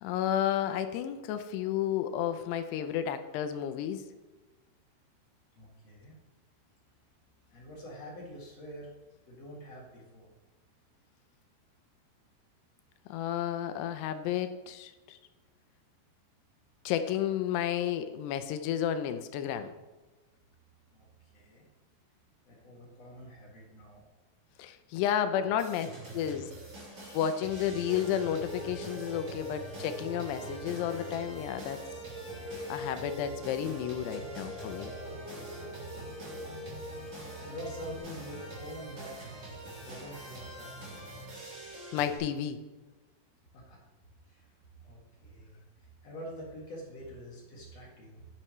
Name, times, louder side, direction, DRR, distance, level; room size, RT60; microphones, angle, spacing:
voice 1, 0.0-4.0 13.1-15.2 16.9-19.7 24.6-25.9 26.1-26.5 27.1-31.8 32.7-34.9 41.9-42.6, left 10 dB, 80° left, 9 dB, 2.6 m, -32 dB
voice 2, 5.5-6.2 7.5-8.9 9.3-10.3 20.9-21.1 21.3-21.7 22.5-24.0 25.3-25.5 35.1-36.3 37.0-39.4 39.8-41.0 43.5-43.8 44.3-44.5 44.8-48.3, equal, 50° left, -4 dB, 2.4 m, -47 dB
sound 1, 25.6-42.2, right 1 dB, 35° right, 4.0 m, -44 dB
sound 2, 27.9-38.0, equal, 65° right, 2.5 m, -44 dB
10.0 x 8.8 x 3.1 m, 1.2 s
omnidirectional pair, 5.0 m